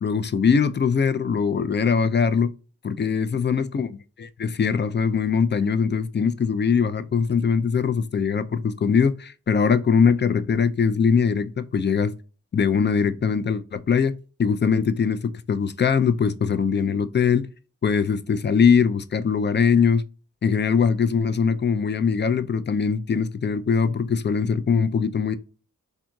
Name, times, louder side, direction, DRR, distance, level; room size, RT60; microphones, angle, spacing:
voice 1, 0.0-2.5 2.8-3.9 4.2-12.1 12.5-17.5 17.8-20.0 20.4-25.4, left 6 dB, 35° left, 0.4 m, -21 dB
3.7 x 2.7 x 2.2 m
cardioid pair, 65°, 34 cm